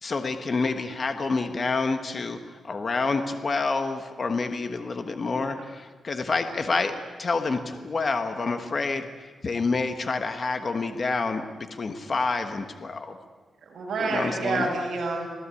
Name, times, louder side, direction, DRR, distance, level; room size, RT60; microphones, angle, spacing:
voice 1, 0.0-2.4 2.6-6.9 7.2-9.1 9.4-13.2 14.0-14.7, left 3 dB, 35° left, 7 dB, 1.3 m, -28 dB
voice 2, 13.7-15.3, right 3 dB, 60° right, -2 dB, 8.0 m, -29 dB
27.0 x 18.0 x 8.4 m, 1.4 s
wide cardioid pair, 170°, 0 cm